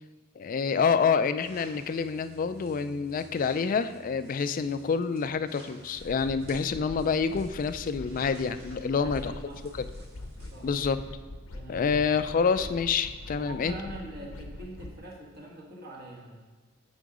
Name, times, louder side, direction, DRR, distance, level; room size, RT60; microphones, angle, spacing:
voice 1, 0.4-9.3 9.8-9.9 10.6-11.0 11.7-13.7, left 5 dB, 40° left, 12 dB, 0.3 m, -27 dB
sound 1, 1.4-10.7, right 1 dB, 75° right, 2.4 m, -54 dB
sound 2, 6.0-15.0, left 2 dB, 85° left, 0.7 m, -43 dB
voice 2, 8.9-9.7 10.5-10.7 11.5-12.0 13.3-16.4, right 1 dB, 45° right, -2 dB, 1.4 m, -43 dB
9.1 x 3.9 x 4.9 m, 1.4 s
head